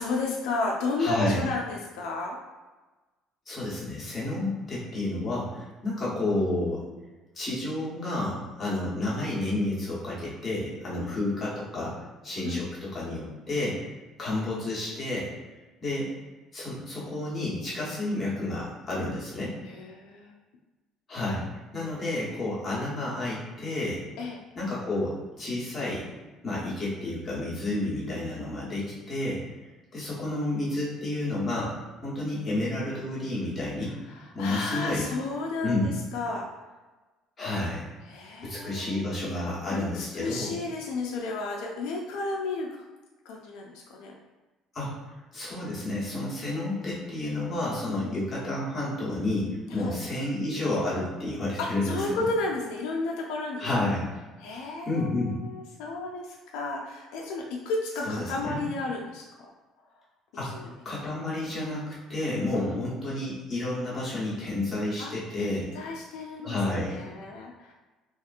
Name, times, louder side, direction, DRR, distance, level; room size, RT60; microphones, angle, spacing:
voice 1, 0.0-2.4 10.9-11.1 12.4-12.6 19.6-20.3 24.2-24.4 34.1-36.5 38.1-39.1 39.7-42.8 43.3-44.1 47.9-48.1 49.7-50.0 51.6-53.7 54.4-59.2 60.6-60.7 62.5-62.7 65.0-65.1 65.4-66.6 66.9-67.7, left 3 dB, 90° left, -1 dB, 0.3 m, -32 dB
voice 2, 1.0-1.4 3.5-6.8 7.3-13.8 14.2-15.3 15.8-16.1 16.5-19.6 21.1-21.5 21.7-24.0 24.5-26.1 26.4-29.5 29.9-31.7 32.0-34.0 34.3-35.1 35.6-35.9 37.4-37.9 38.4-40.6 44.7-44.9 45.3-52.3 53.6-54.0 54.9-55.4 58.0-58.7 60.3-60.5 60.8-65.7 66.4-67.0, left 2 dB, 25° left, -7 dB, 1.0 m, -30 dB
2.8 x 2.5 x 2.4 m, 1.2 s
cardioid pair, 130°, 0 cm